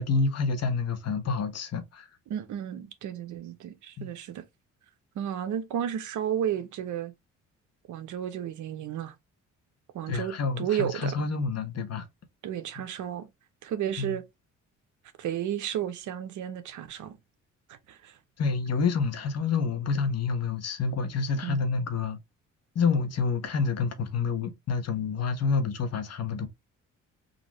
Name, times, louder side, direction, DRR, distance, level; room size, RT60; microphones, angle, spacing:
voice 1, 0.0-2.1 4.0-4.1 10.1-12.1 14.0-14.2 18.4-22.2 22.7-26.5, left 4 dB, 55° left, 1.2 m, -28 dB
voice 2, 2.3-4.4 5.1-7.1 7.9-9.1 9.9-11.1 12.4-13.3 13.6-14.2 15.2-17.2 17.7-18.1 21.4-21.6, right 10 dB, 75° right, 0.9 m, -33 dB
3.9 x 2.8 x 3.0 m
cardioid pair, 90°, 30 cm